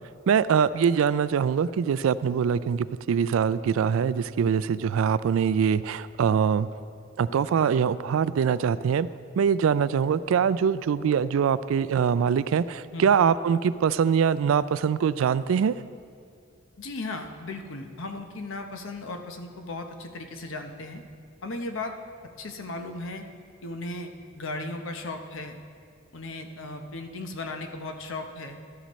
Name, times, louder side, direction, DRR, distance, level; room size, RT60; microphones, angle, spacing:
voice 1, 0.3-6.7 7.2-9.1 9.4-15.7, right 7 dB, 75° right, 17 dB, 0.3 m, -23 dB
voice 2, 16.8-21.0 21.4-21.9 22.4-23.2 23.6-25.6 26.1-28.6, left 2 dB, 65° left, 5 dB, 0.9 m, -36 dB
13.0 x 12.5 x 3.1 m, 2.2 s
head